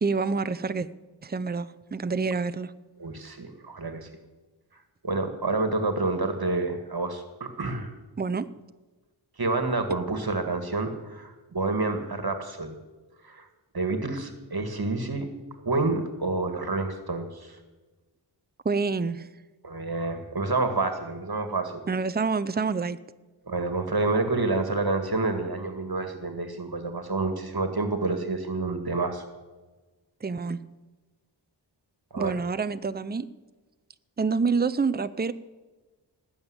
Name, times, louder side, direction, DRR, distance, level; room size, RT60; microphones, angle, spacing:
voice 1, 0.0-0.9 1.2-2.7 8.2-8.5 18.6-19.3 21.9-23.0 30.2-30.6 32.2-33.3 34.2-35.3, right 4 dB, 20° right, 13 dB, 0.6 m, -27 dB
voice 2, 3.0-4.1 5.0-7.9 9.4-12.8 13.2-13.5 13.7-15.3 15.6-17.6 19.6-21.8 23.5-29.2 32.1-32.4, right 3 dB, 50° right, 7 dB, 1.9 m, -28 dB
19.0 x 7.2 x 9.7 m, 1.2 s
wide cardioid pair, 80°, 46 cm